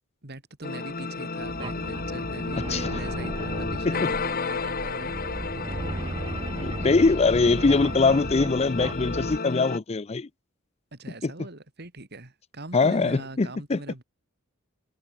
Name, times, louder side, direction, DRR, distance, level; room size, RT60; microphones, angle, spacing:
voice 1, 0.2-5.1 10.9-14.0, right 2 dB, 55° right, 3.5 m, -41 dB
Hypnotic Loop. Rozas, 0.6-9.8, left 4 dB, 45° left, 1.6 m, -32 dB
sound 1, 1.4-9.4, right 2 dB, 25° right, 0.7 m, -35 dB
voice 2, 6.6-10.3 11.2-11.3 12.7-13.8, left 3 dB, 30° left, 0.5 m, -22 dB
head